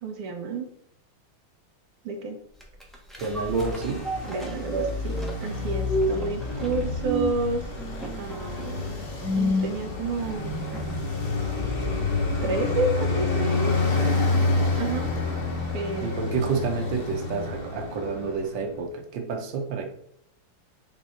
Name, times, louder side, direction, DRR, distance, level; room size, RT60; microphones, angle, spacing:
voice 1, 0.0-0.7 2.1-2.4 4.2-7.6 8.2-9.0 9.4-10.6 12.4-14.3 14.8-15.1 15.7-16.5, right 2 dB, 85° right, 4 dB, 1.9 m, -30 dB
sound 1, 2.6-11.2 11.6-11.7, equal, ahead, 0.8 m, -32 dB
Traffic noise roadway noise, 3.2-18.7, left 3 dB, 35° left, 1.0 m, -29 dB
voice 2, 3.2-4.0 16.0-19.8, right 5 dB, 65° right, 3 dB, 1.6 m, -29 dB
7.1 x 3.6 x 4.2 m, 0.70 s
omnidirectional pair, 2.3 m